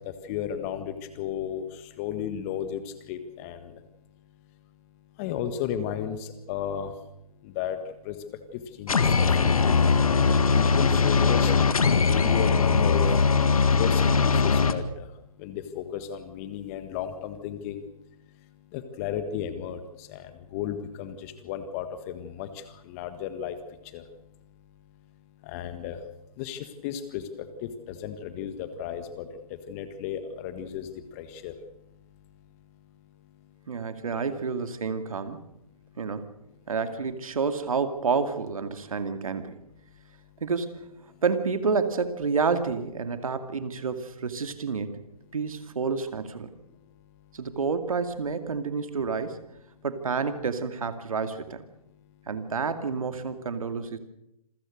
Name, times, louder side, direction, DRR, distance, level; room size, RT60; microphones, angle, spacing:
voice 1, 0.0-1.6 2.0-2.8 3.1-3.6 5.2-6.2 6.5-6.9 7.6-7.8 8.1-8.2 8.8-9.8 10.3-11.5 12.1-13.1 13.8-15.1 15.4-17.9 18.7-19.8 20.1-20.2 20.5-22.5 22.9-23.6 23.9-24.0 25.5-26.0 26.4-27.2 27.6-29.3 29.7-30.9 31.2-31.5, left 9 dB, 25° left, 10 dB, 1.7 m, -33 dB
sound 1, 8.9-14.7, left 5 dB, 70° left, 1.8 m, -21 dB
voice 2, 33.7-35.4 36.0-36.3 36.7-39.5 40.4-40.8 41.2-45.0 45.3-46.5 47.3-49.4 49.8-51.6 52.3-54.0, right 5 dB, 65° right, 9 dB, 2.4 m, -29 dB
27.0 x 15.5 x 6.5 m, 0.82 s
figure-of-eight pair, 145°, 19 cm